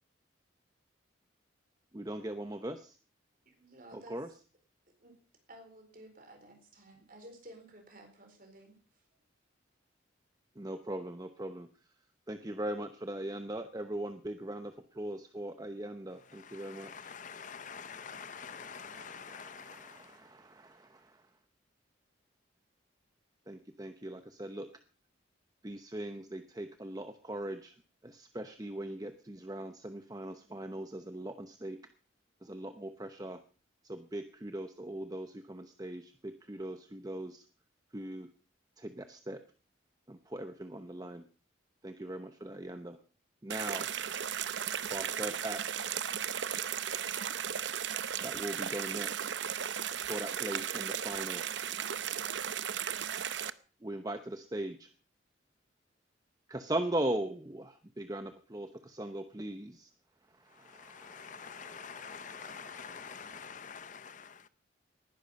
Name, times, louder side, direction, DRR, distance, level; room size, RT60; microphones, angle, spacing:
voice 1, 1.9-3.0 3.9-4.3 10.6-11.7 12.3-17.1 17.6-21.3 23.5-24.7 25.6-27.7 28.0-31.8 32.4-33.4 33.8-37.5 37.9-38.3 38.8-39.4 40.1-41.2 41.8-43.0 43.4-43.9 44.9-45.9 48.2-49.3 50.1-51.4 53.8-54.9 56.5-59.9 60.3-63.5, right 1 dB, 20° right, 0.8 m, -40 dB
voice 2, 3.5-4.2 5.0-5.2 5.5-9.2, right 1 dB, 45° right, 4.3 m, -54 dB
voice 3, 16.4-20.2 60.6-64.5, left 6 dB, 40° left, 0.7 m, -46 dB
sound 1, 43.5-53.5, right 9 dB, 70° right, 0.7 m, -36 dB
19.0 x 11.0 x 5.3 m
head